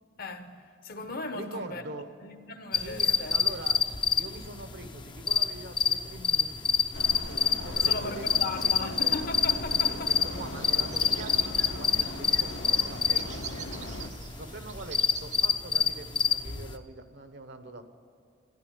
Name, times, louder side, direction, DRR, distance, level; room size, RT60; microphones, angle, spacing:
voice 1, 0.2-1.8 2.2-3.4 7.8-10.2, left 3 dB, 50° left, 1.1 m, -37 dB
voice 2, 1.3-2.1 2.8-3.8 4.2-6.9 7.6-9.2 9.7-13.4 14.4-17.8, right 2 dB, 60° right, 1.2 m, -43 dB
sound 1, 2.7-16.8, left 7 dB, 25° left, 0.6 m, -27 dB
sound 2, 6.9-14.1, left 2 dB, 75° left, 1.4 m, -39 dB
sound 3, 10.3-15.5, right 6 dB, 40° right, 0.9 m, -44 dB
13.5 x 11.0 x 9.3 m
head